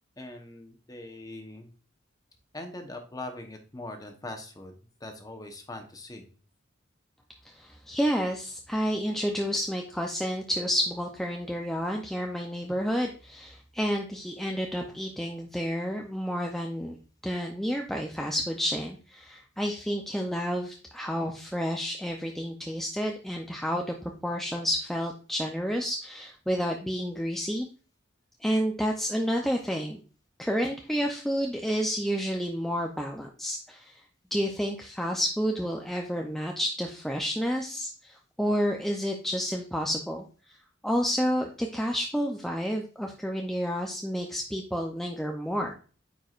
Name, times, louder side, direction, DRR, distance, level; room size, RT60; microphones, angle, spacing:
voice 1, 0.2-1.7 2.5-4.7 5.0-6.3, left 2 dB, 20° left, 4 dB, 0.9 m, -41 dB
voice 2, 7.6-17.0 17.2-24.0 24.2-27.7 28.4-30.0 30.4-34.0 34.3-40.2 40.8-45.7, equal, ahead, 1 dB, 0.5 m, -30 dB
9.2 x 4.6 x 2.5 m, 0.39 s
head